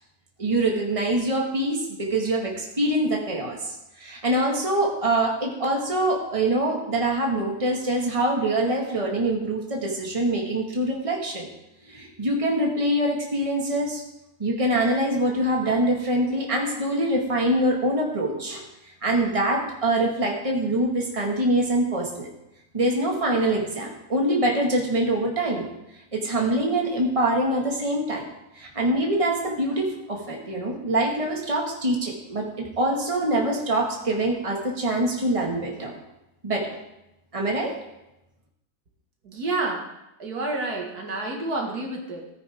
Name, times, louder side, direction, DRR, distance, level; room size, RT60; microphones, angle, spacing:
voice 1, 0.4-11.5 11.9-14.0 14.4-18.7 19.0-22.3 22.7-25.7 26.1-28.2 28.6-36.0 36.4-36.7 37.3-37.7, right 1 dB, 20° right, 0 dB, 2.0 m, -24 dB
voice 2, 39.2-39.9 40.2-42.3, right 2 dB, 80° right, 0 dB, 2.4 m, -29 dB
17.5 x 9.6 x 3.6 m, 0.89 s
omnidirectional pair, 1.6 m